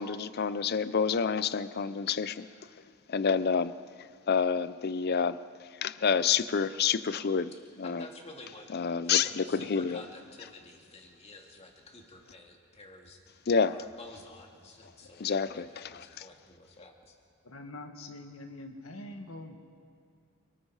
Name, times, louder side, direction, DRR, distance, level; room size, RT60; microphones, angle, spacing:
voice 1, 0.0-2.5 3.1-3.7 4.3-5.4 5.8-7.5 7.8-8.1 8.7-10.0 13.5-13.8 15.2-16.2, left 6 dB, 45° left, 15 dB, 0.5 m, -28 dB
voice 2, 7.8-9.1 9.4-13.2 13.6-17.1, left 2 dB, 30° left, 1 dB, 2.4 m, -50 dB
voice 3, 9.4-9.8 17.4-19.6, left 2 dB, 70° left, 5 dB, 1.8 m, -45 dB
29.0 x 19.5 x 4.9 m, 2.3 s
head